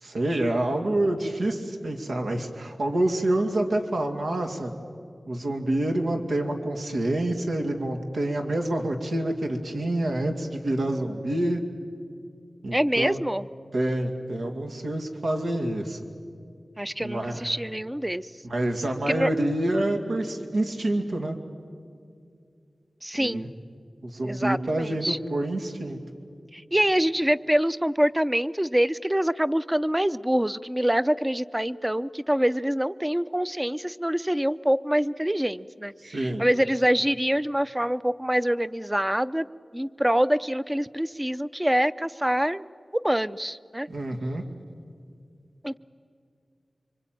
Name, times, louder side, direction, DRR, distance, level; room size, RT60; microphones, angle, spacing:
voice 1, 0.0-4.7 5.3-11.6 12.6-13.2 13.7-16.0 17.0-17.5 18.5-21.4 23.2-23.4 24.0-26.0 36.0-36.4 43.9-44.4, right 1 dB, 85° right, 3 dB, 2.4 m, -27 dB
voice 2, 12.7-13.5 16.8-18.3 19.1-19.3 23.0-23.5 24.2-25.2 26.5-39.5 39.7-42.6 42.9-43.9 45.6-45.8, equal, 10° right, 14 dB, 0.6 m, -25 dB
26.0 x 25.0 x 9.2 m, 2.4 s
wide cardioid pair, 85°, 0 cm